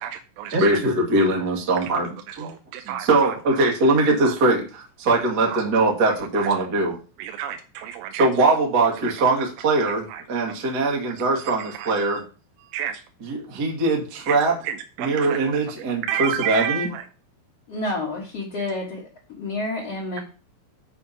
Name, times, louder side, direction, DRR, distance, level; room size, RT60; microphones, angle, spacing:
voice 1, 0.0-0.8 1.1-1.3 1.7-1.9 2.3-3.7 4.2-4.3 5.5-5.6 6.3-6.5 7.2-8.3 8.9-9.3 9.8-10.6 11.6-12.2 12.6-13.0 14.2-15.4 16.0-17.1, right 10 dB, 90° right, 5 dB, 3.3 m, -32 dB
voice 2, 0.5-2.1 2.4-2.5 3.0-6.9 8.2-12.2 13.5-14.5 15.0-16.9, right 2 dB, 70° right, -1 dB, 0.9 m, -21 dB
voice 3, 17.7-19.1 19.4-20.2, left 2 dB, 65° left, -5 dB, 1.5 m, -29 dB
8.3 x 4.4 x 6.7 m, 0.36 s
omnidirectional pair, 5.9 m